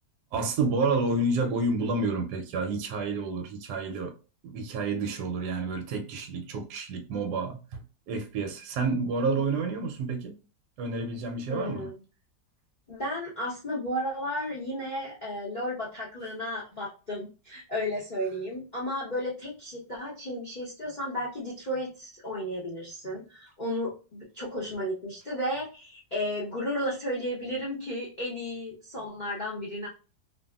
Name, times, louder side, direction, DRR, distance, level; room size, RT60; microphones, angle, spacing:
voice 1, 0.3-4.1 4.4-7.8 8.1-10.4 10.8-11.9, right 3 dB, 70° right, 1.0 m, -29 dB
voice 2, 11.5-12.0 12.9-29.9, left 1 dB, 75° left, 0.4 m, -33 dB
2.6 x 2.6 x 2.2 m
omnidirectional pair, 2.0 m